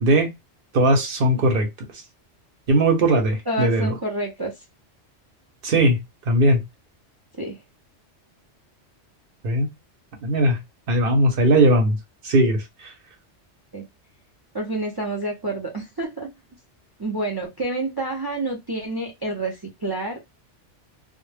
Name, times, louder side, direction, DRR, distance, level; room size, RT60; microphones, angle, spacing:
voice 1, 0.7-1.7 2.7-3.9 5.6-6.0 6.3-6.6 9.4-9.7 10.2-10.6 10.9-12.0 12.2-12.9, right 1 dB, 55° right, 0.8 m, -19 dB
voice 2, 3.5-4.5 7.4-7.6 13.7-13.9 14.5-16.3 17.0-19.6 19.8-20.2, right 2 dB, 40° right, 0.3 m, -28 dB
2.1 x 2.1 x 3.1 m
omnidirectional pair, 1.2 m